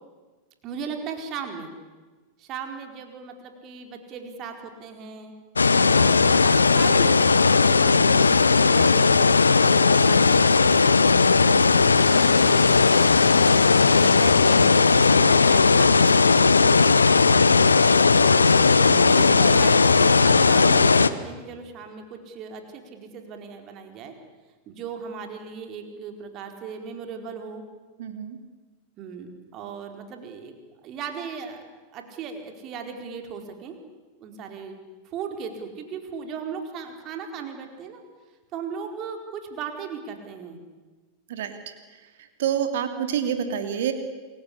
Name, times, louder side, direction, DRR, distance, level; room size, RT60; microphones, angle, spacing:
voice 1, 0.6-1.7 2.4-5.3 5.8-9.3 9.7-13.1 13.7-16.6 18.1-24.1 24.7-27.6 29.0-30.5 30.8-31.6 31.9-33.8 34.2-34.7 35.0-38.0 38.5-40.6, right 6 dB, 35° right, 5 dB, 4.5 m, -37 dB
sound 1, 5.6-21.1, left 4 dB, 75° left, 1.0 m, -17 dB
voice 2, 28.0-28.4 41.3-41.5 42.4-43.9, right 9 dB, 55° right, 7 dB, 2.8 m, -27 dB
28.5 x 22.5 x 8.5 m, 1.3 s
figure-of-eight pair, 90°, 0 cm